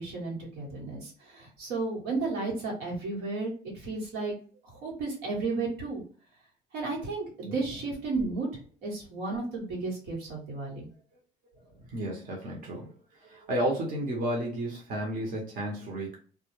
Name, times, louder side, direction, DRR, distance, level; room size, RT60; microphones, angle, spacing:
voice 1, 0.0-4.3 4.8-6.0 6.7-8.5 8.8-10.9, right 3 dB, 90° right, -2 dB, 1.1 m, -33 dB
voice 2, 11.9-12.9 13.2-16.1, right 1 dB, 55° right, -1 dB, 0.8 m, -32 dB
2.2 x 2.0 x 3.0 m, 0.41 s
cardioid pair, 110°, 17 cm